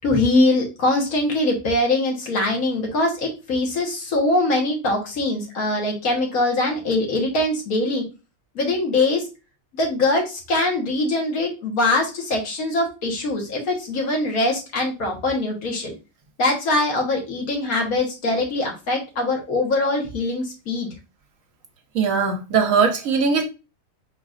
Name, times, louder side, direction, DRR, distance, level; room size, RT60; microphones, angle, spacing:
voice 1, 0.0-8.0 8.5-9.2 9.7-15.9 16.4-20.9, left 2 dB, 70° left, 1.7 m, -22 dB
voice 2, 21.9-23.4, right 5 dB, 65° right, 1.1 m, -20 dB
4.8 x 4.0 x 2.4 m
omnidirectional pair, 1.6 m